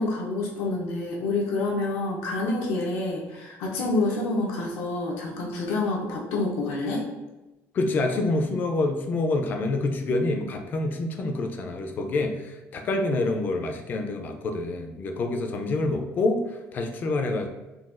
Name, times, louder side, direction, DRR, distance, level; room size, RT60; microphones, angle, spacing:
voice 1, 0.0-7.0, left 2 dB, 90° left, -2 dB, 0.6 m, -28 dB
voice 2, 7.7-17.5, left 2 dB, 35° left, 5 dB, 0.4 m, -27 dB
3.9 x 2.2 x 2.4 m, 1.1 s
cardioid pair, 150°, 5 cm